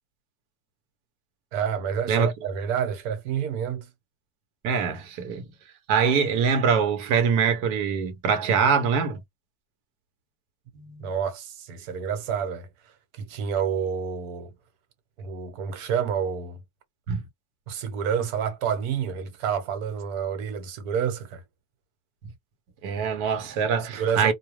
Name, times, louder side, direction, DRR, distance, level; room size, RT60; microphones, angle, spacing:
voice 1, 1.5-3.9 11.0-12.7 13.1-14.5 15.2-16.6 17.7-21.4 23.8-24.3, right 7 dB, 85° right, 1.2 m, -29 dB
voice 2, 4.6-5.4 5.9-9.2 10.8-11.1 17.1-17.2 22.8-24.3, right 6 dB, 55° right, 1.1 m, -23 dB
2.3 x 2.2 x 3.2 m
cardioid pair, 155°, 38 cm